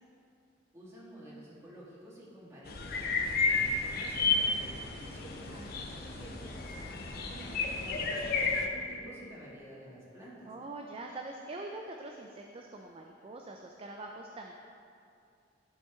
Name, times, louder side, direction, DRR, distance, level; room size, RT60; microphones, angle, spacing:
voice 1, 0.7-10.5, right 1 dB, 15° right, -8 dB, 1.8 m, -50 dB
sound 1, 2.7-8.7, left 4 dB, 55° left, 0.6 m, -32 dB
voice 2, 5.5-6.0 10.5-14.5, right 2 dB, 30° right, 2 dB, 0.4 m, -44 dB
12.0 x 4.4 x 3.5 m, 2.5 s
head